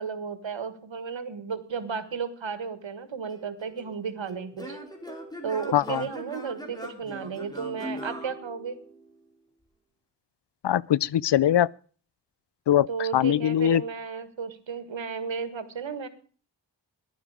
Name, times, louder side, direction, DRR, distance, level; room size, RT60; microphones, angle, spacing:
voice 1, 0.0-4.8 5.4-8.8 12.9-16.1, right 6 dB, 90° right, 1.6 m, -34 dB
Singing / Plucked string instrument, 3.3-9.2, equal, 10° left, 2.9 m, -41 dB
voice 2, 5.7-6.0 10.6-11.7 12.7-13.8, left 11 dB, 70° left, 0.5 m, -22 dB
14.5 x 11.0 x 4.9 m
wide cardioid pair, 80°, 44 cm